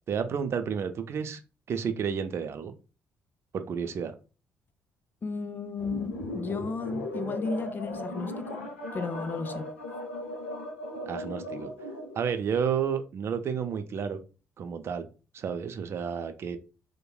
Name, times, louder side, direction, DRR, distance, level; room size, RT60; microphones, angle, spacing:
voice 1, 0.1-1.4 1.7-2.7 3.5-4.1 11.1-11.7 12.2-14.2 14.6-15.1 15.3-16.6, right 7 dB, 45° right, 0.4 m, -31 dB
voice 2, 5.2-8.6 8.9-9.6, left 4 dB, 35° left, 0.4 m, -34 dB
sound 1, 5.8-12.2, left 1 dB, 90° left, 0.6 m, -37 dB
3.0 x 2.1 x 2.2 m
hypercardioid pair, 45°, 6 cm